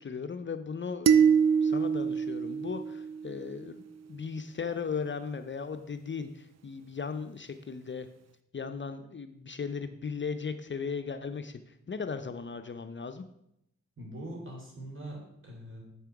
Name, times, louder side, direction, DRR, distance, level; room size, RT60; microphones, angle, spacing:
voice 1, 0.0-3.8 4.1-8.1 8.5-13.2, left 5 dB, 40° left, 8 dB, 0.6 m, -37 dB
sound 1, 1.1-3.5, right 7 dB, 60° right, 0.5 m, -25 dB
voice 2, 14.0-15.9, right 1 dB, 40° right, -1 dB, 3.4 m, -42 dB
7.7 x 5.7 x 4.7 m, 0.79 s
cardioid pair, 45°, 30 cm